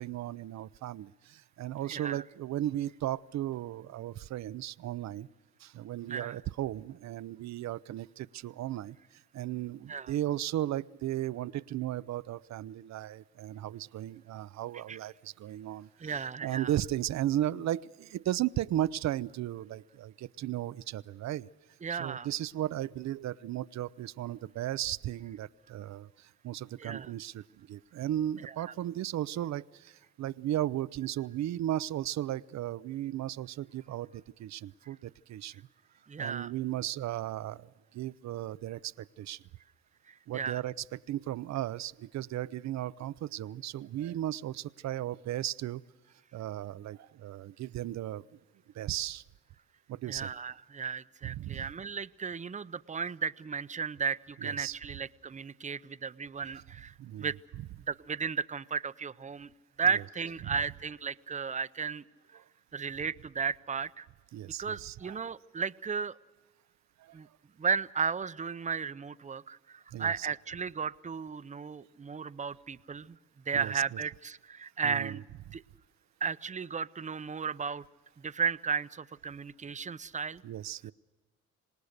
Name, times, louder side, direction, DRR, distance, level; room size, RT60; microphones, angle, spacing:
voice 1, 0.0-5.3 5.6-21.5 21.9-35.6 36.2-39.4 40.3-45.8 46.3-48.3 48.7-49.2 49.9-50.3 51.2-51.7 54.4-54.7 57.0-57.3 57.6-57.7 60.4-60.6 62.3-62.4 64.3-65.2 67.0-67.2 69.9-70.3 73.5-74.0 74.8-75.2 80.4-80.9, right 13 dB, 65° right, 18 dB, 0.6 m, -35 dB
voice 2, 1.9-2.2 6.1-6.4 9.9-10.1 14.9-15.0 16.0-16.7 21.8-22.3 26.8-27.1 28.5-28.6 36.1-36.5 40.1-40.6 50.1-57.4 57.9-59.5 59.8-62.0 62.7-64.1 64.6-66.2 67.1-67.3 67.6-73.2 73.5-75.2 75.5-75.6 76.2-77.8 78.2-80.4, right 6 dB, 25° right, 15 dB, 0.6 m, -34 dB
26.0 x 19.5 x 6.6 m, 1.3 s
cardioid pair, 90°, 30 cm